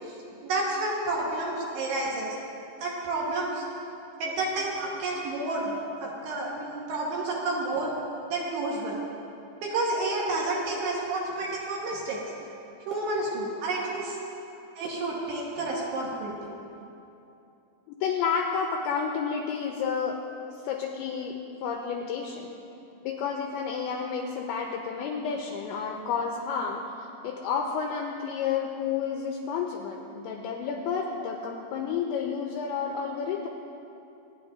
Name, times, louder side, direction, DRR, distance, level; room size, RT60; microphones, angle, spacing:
voice 1, 0.4-2.4 2.8-3.6 4.2-7.9 8.3-9.0 9.6-12.2 12.9-14.2 14.8-16.3, right 2 dB, 70° right, -3 dB, 2.9 m, -30 dB
voice 2, 17.9-20.2 20.6-22.5 23.0-33.5, left 6 dB, 90° left, 1 dB, 2.6 m, -31 dB
26.5 x 9.8 x 2.6 m, 2.8 s
omnidirectional pair, 5.9 m